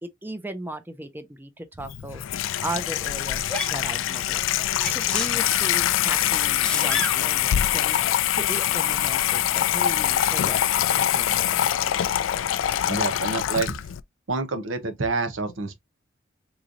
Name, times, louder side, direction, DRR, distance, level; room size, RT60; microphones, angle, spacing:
voice 1, 0.0-11.4, right 1 dB, 10° right, 0.5 m, -37 dB
Water tap faucet / Sink (filling or washing), 1.8-14.0, left 11 dB, 75° left, 0.3 m, -24 dB
Sneeze, 3.5-3.8 4.8-5.7 6.3-7.2 8.5-8.7, left 2 dB, 5° left, 0.9 m, -31 dB
voice 2, 12.9-13.7 14.3-15.8, right 3 dB, 80° right, 0.9 m, -27 dB
3.8 x 3.1 x 2.5 m
head